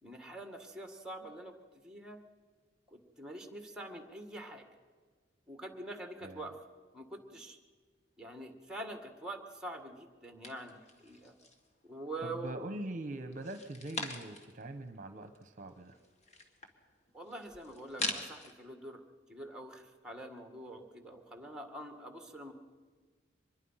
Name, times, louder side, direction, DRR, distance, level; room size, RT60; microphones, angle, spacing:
voice 1, 0.0-1.6 1.8-2.2 2.9-4.7 5.5-6.6 6.9-7.6 8.2-11.3 11.8-12.7 17.1-19.0 19.3-22.5, right 1 dB, 5° right, 5 dB, 1.9 m, -45 dB
sound 1, 10.4-11.7 12.1-12.8 13.3-14.6 15.0-15.1 15.2-18.5, left 2 dB, 40° left, 2.0 m, -42 dB
voice 2, 12.4-16.0, right 1 dB, 45° right, 8 dB, 1.1 m, -42 dB
24.5 x 21.0 x 5.8 m, 1.5 s
head